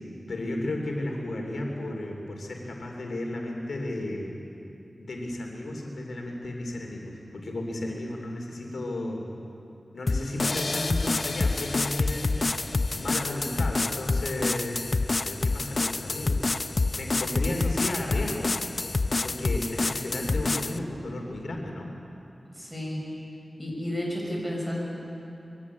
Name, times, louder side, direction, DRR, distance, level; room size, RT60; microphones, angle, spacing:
voice 1, 0.3-4.3 5.0-9.3 9.9-14.8 15.2-16.5 16.9-18.6 19.2-21.9, left 1 dB, 85° left, 1 dB, 3.0 m, -33 dB
sound 1, 10.1-20.8, left 3 dB, 50° left, 0.6 m, -27 dB
voice 2, 22.6-23.1 23.6-24.8, left 1 dB, 10° right, -2 dB, 6.3 m, -32 dB
23.0 x 16.0 x 8.5 m, 2.8 s
wide cardioid pair, 65°, 0 cm